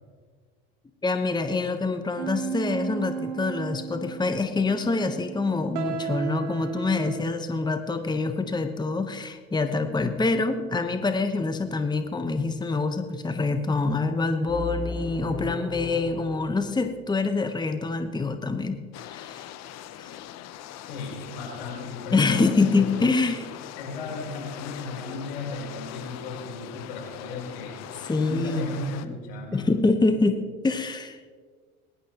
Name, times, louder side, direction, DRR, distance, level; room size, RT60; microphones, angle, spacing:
voice 1, 1.0-19.5 20.0-20.1 22.1-23.4 28.1-29.1 29.5-31.2, left 3 dB, 15° left, 8 dB, 1.1 m, -26 dB
sound 1, 2.2-7.2, right 7 dB, 70° right, 1.3 m, -34 dB
sound 2, 11.6-12.4 14.5-16.6, left 3 dB, 5° right, 1.6 m, -36 dB
sound 3, 18.9-29.1, left 11 dB, 55° left, 0.9 m, -41 dB
voice 2, 20.9-23.1 23.8-27.8 28.2-29.7, left 3 dB, 80° left, 0 dB, 4.1 m, -35 dB
22.0 x 11.5 x 3.0 m, 1.5 s
hypercardioid pair, 70°, 31 cm